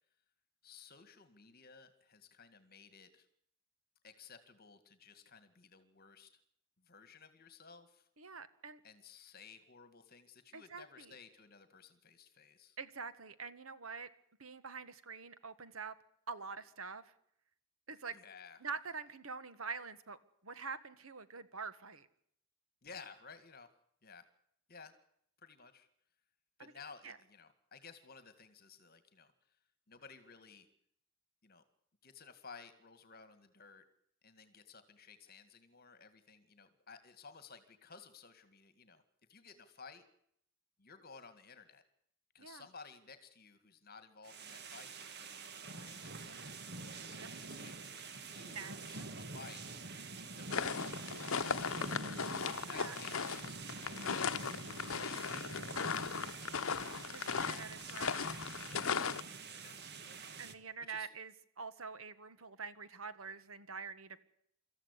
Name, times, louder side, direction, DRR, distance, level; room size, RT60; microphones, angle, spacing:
voice 1, 0.6-3.3 4.0-6.4 6.8-8.1 8.8-12.8 18.1-18.6 22.8-23.7 24.0-24.3 24.7-24.9 25.4-25.9 26.6-29.6 29.9-30.7 31.4-31.6 32.0-33.8 34.2-39.0 39.3-40.0 40.8-41.8 42.3-46.4 47.1-49.6 50.1-51.8 52.5-54.6 54.8-56.9 58.7-60.3 60.8-61.1, left 5 dB, 45° left, 11 dB, 2.0 m, -56 dB
voice 2, 8.2-8.8 10.5-11.1 12.8-14.1 14.4-15.9 16.3-17.1 17.9-18.1 18.6-20.2 20.4-22.1 26.6-26.7 27.0-27.2 42.4-42.6 47.1-47.3 48.5-49.1 52.7-52.9 56.8-58.3 60.4-64.2, right 5 dB, 75° right, 13 dB, 1.6 m, -46 dB
sound 1, 44.2-60.5, right 3 dB, 50° right, 1.7 m, -46 dB
sound 2, 50.5-59.2, left 6 dB, 70° left, 0.9 m, -37 dB
26.0 x 14.5 x 8.3 m, 0.70 s
head